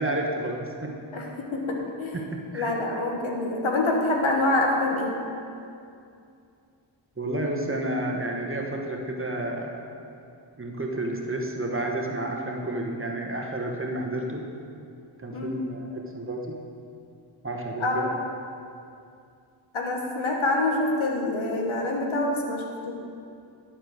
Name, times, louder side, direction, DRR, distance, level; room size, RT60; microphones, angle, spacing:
voice 1, 0.0-1.0 2.1-2.7 7.2-9.9 10.6-14.5 15.2-16.6 17.4-18.1, right 1 dB, 25° right, 1 dB, 1.4 m, -31 dB
voice 2, 1.1-2.2 2.5-5.1 15.3-15.6 17.8-18.1 19.7-22.9, left 2 dB, 70° left, 0 dB, 1.6 m, -26 dB
12.0 x 4.4 x 6.5 m, 2.5 s
cardioid pair, 45°, 50 cm